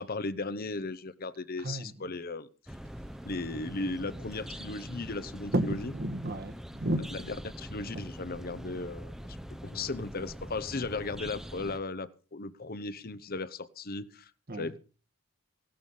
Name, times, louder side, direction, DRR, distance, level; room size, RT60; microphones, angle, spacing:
voice 1, 0.0-2.7 3.2-5.9 7.1-9.1 9.5-14.8, left 3 dB, 40° left, 0.9 m, -36 dB
sound 1, 2.7-11.8, equal, ahead, 0.8 m, -43 dB
voice 2, 5.5-7.1 7.9-8.0 14.5-14.7, right 1 dB, 45° right, 1.5 m, -32 dB
17.0 x 12.0 x 5.5 m
head